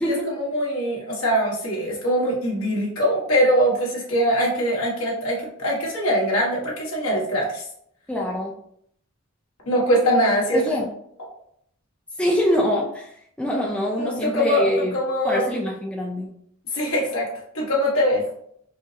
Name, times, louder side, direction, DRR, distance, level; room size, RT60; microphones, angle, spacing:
voice 1, 0.0-7.6 9.6-10.6 14.0-15.4 16.7-17.3 17.5-18.2, equal, 80° left, -4 dB, 1.3 m, -22 dB
voice 2, 8.1-8.5 10.5-10.8 12.2-15.0 15.2-16.3, left 1 dB, 5° left, -2 dB, 0.4 m, -24 dB
4.7 x 2.0 x 2.7 m, 0.69 s
head